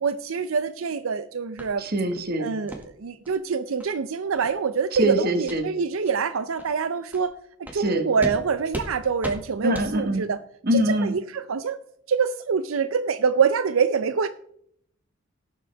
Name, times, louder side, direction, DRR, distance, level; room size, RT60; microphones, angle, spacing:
voice 1, 0.0-1.8 2.4-7.3 7.7-10.4 10.7-11.8 12.1-14.3, right 6 dB, 80° right, 12 dB, 0.5 m, -25 dB
sound 1, 1.6-1.7 2.1-2.3 2.7-2.8 3.2-3.4 3.8-3.9 4.3-4.5 4.9-5.1 5.4-5.6 6.0-6.1 6.6-6.7 7.1-7.2 7.6-7.8 8.2-8.4 8.7-8.9 9.2-9.4 9.7-9.9, right 1 dB, 10° right, 1.7 m, -35 dB
voice 2, 1.8-2.6 5.0-5.7 7.7-8.1 9.6-10.2 10.6-11.1, equal, 45° right, 7 dB, 1.5 m, -24 dB
17.5 x 7.4 x 3.4 m, 0.68 s
head